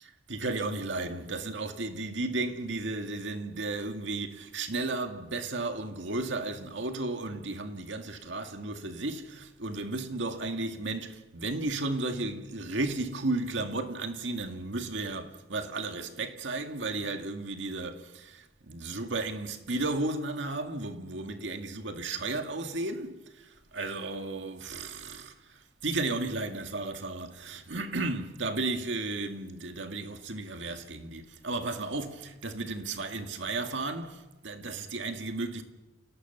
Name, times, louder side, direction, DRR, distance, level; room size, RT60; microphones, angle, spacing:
voice 1, 0.3-35.6, right 2 dB, 75° right, 2.0 m, -34 dB
28.5 x 18.0 x 6.8 m
head